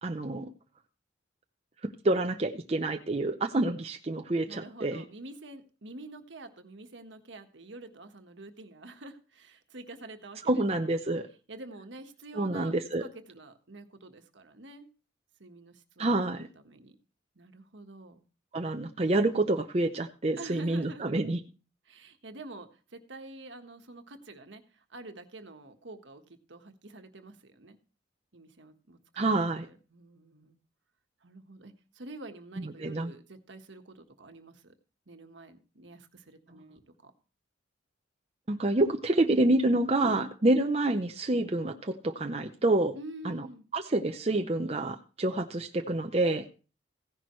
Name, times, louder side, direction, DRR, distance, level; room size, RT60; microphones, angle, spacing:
voice 1, 0.0-0.5 1.8-5.0 10.5-11.3 12.4-13.0 16.0-16.5 18.5-21.4 29.2-29.7 32.8-33.1 38.5-43.0 43.2-43.5 43.7-46.5, right 2 dB, 30° right, 5 dB, 0.7 m, -27 dB
voice 2, 4.5-11.0 11.5-12.7 13.0-14.9 15.4-17.0 17.3-18.2 20.4-21.2 21.9-27.8 28.3-30.6 31.2-34.7 35.1-37.1 40.0-40.3 42.9-43.7, right 2 dB, 70° right, 7 dB, 1.4 m, -47 dB
16.0 x 10.5 x 3.1 m, 0.35 s
head